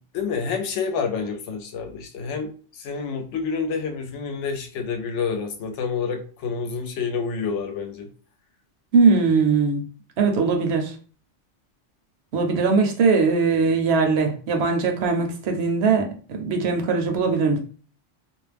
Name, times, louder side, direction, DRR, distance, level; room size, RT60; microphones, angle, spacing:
voice 1, 0.1-2.5 2.8-8.1, left 5 dB, 75° left, 5 dB, 0.9 m, -28 dB
voice 2, 8.9-9.8 10.2-10.9 12.3-17.6, right 4 dB, 65° right, 3 dB, 0.8 m, -20 dB
2.4 x 2.0 x 3.3 m, 0.40 s
omnidirectional pair, 1.2 m